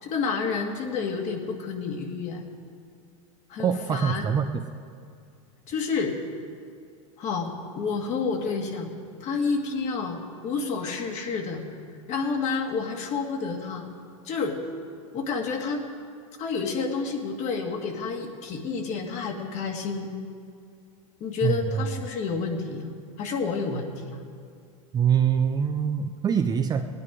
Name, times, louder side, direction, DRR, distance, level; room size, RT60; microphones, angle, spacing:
voice 1, 0.0-2.5 3.5-4.3 5.7-6.2 7.2-8.9 9.2-11.6 12.1-13.9 14.2-14.6 15.1-15.8 16.4-20.1 21.2-24.2, left 4 dB, 40° left, 2 dB, 2.0 m, -29 dB
voice 2, 3.6-4.8 21.4-21.9 24.9-26.8, right 7 dB, 20° right, 7 dB, 0.6 m, -24 dB
18.0 x 9.8 x 4.9 m, 2.3 s
hypercardioid pair, 115°, 18 cm